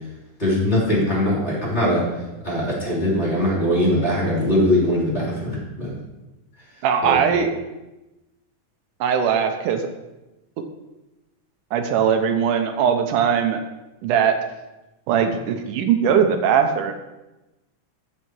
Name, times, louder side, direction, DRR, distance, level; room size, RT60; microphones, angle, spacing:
voice 1, 0.4-2.0 2.4-5.9 7.0-7.2, left 1 dB, 20° left, -5 dB, 3.1 m, -21 dB
voice 2, 6.8-7.6 9.0-9.8 11.7-13.6 14.0-14.4 15.1-16.9, right 7 dB, 85° right, 6 dB, 2.3 m, -20 dB
13.0 x 5.6 x 4.6 m, 1.0 s
omnidirectional pair, 3.7 m